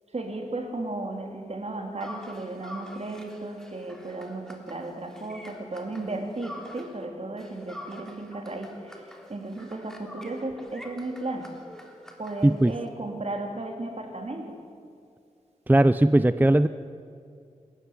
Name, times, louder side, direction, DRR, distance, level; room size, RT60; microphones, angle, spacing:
voice 1, 0.1-11.5 12.2-14.6, right 2 dB, 55° right, 2 dB, 3.7 m, -35 dB
sound 1, 2.0-7.1 7.4-12.9, left 1 dB, 5° left, 3.6 m, -46 dB
voice 2, 15.7-16.7, right 1 dB, 15° right, 12 dB, 0.6 m, -19 dB
27.0 x 14.5 x 9.8 m, 2.4 s
wide cardioid pair, 75°, 13 cm